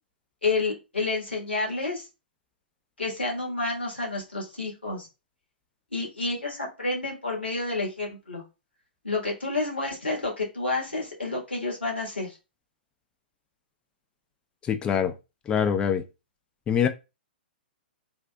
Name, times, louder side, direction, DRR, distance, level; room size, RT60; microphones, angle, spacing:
voice 1, 0.4-2.1 3.0-5.1 5.9-8.4 9.0-12.4, left 3 dB, 80° left, 1.4 m, -29 dB
voice 2, 14.6-15.1 15.5-16.0 16.7-16.9, left 8 dB, 15° left, 0.3 m, -24 dB
3.6 x 2.4 x 2.2 m
figure-of-eight pair, 115°, 6 cm